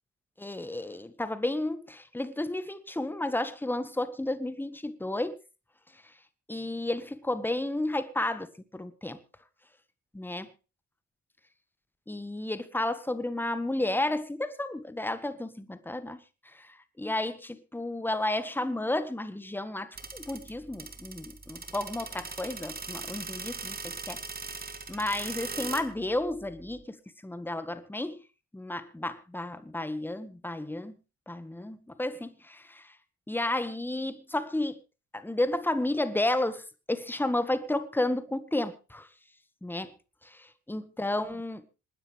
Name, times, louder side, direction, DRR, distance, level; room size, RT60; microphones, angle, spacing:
voice 1, 0.4-5.4 5.9-6.1 6.5-9.2 10.1-10.5 12.1-28.2 28.5-31.0 31.3-32.9 33.3-34.8 35.1-39.1 39.6-39.9 40.2-41.7, left 1 dB, 5° left, 1.3 m, -32 dB
sound 1, 19.9-26.8, right 4 dB, 30° right, 1.9 m, -40 dB
27.5 x 9.8 x 3.2 m
cardioid pair, 90°, 30 cm